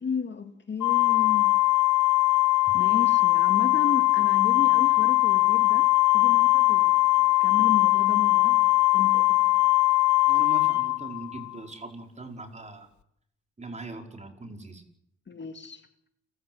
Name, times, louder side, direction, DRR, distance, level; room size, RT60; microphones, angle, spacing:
voice 1, 0.0-1.5 2.7-9.7 15.3-15.9, left 5 dB, 35° left, 7 dB, 2.1 m, -34 dB
Organ, 0.8-11.5, left 21 dB, 70° left, 1.3 m, -21 dB
voice 2, 10.3-12.9 13.6-14.8, right 2 dB, 25° right, 3 dB, 4.9 m, -40 dB
29.0 x 15.0 x 7.8 m, 0.73 s
cardioid pair, 90°, 30 cm